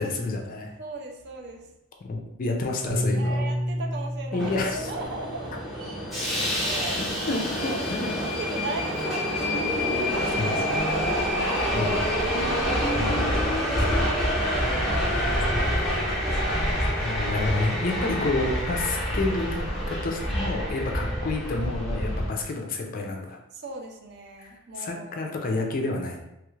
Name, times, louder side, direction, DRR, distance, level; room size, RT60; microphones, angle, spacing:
voice 1, 0.0-0.7 2.0-3.5 4.3-4.8 7.3-8.1 10.4-10.6 11.7-12.0 12.9-13.2 17.0-23.4 24.4-26.2, left 2 dB, 40° left, 2 dB, 0.4 m, -29 dB
voice 2, 0.8-1.7 3.1-5.7 6.6-7.2 7.6-12.7 13.4-17.0 20.8-21.0 23.5-25.3, right 2 dB, 50° right, 2 dB, 0.4 m, -38 dB
Piano, 2.9-7.3, equal, 65° right, 1.2 m, -31 dB
Subway metro underground, 4.4-22.3, equal, ahead, 0.7 m, -27 dB
3.1 x 2.4 x 3.1 m, 0.86 s
head